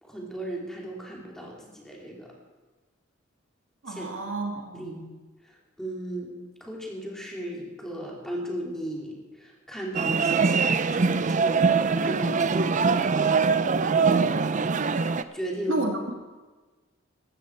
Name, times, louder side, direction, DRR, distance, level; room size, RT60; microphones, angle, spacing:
voice 1, 0.0-2.3 3.8-4.1 4.7-5.0 5.4-6.3 6.6-14.4 15.3-15.9, right 1 dB, 5° left, -3 dB, 2.9 m, -36 dB
voice 2, 3.8-5.0 15.7-15.9, right 1 dB, 70° right, 2 dB, 2.3 m, -31 dB
sound 1, 9.9-15.2, right 5 dB, 40° right, 0.5 m, -23 dB
16.0 x 12.5 x 4.6 m, 1.2 s
head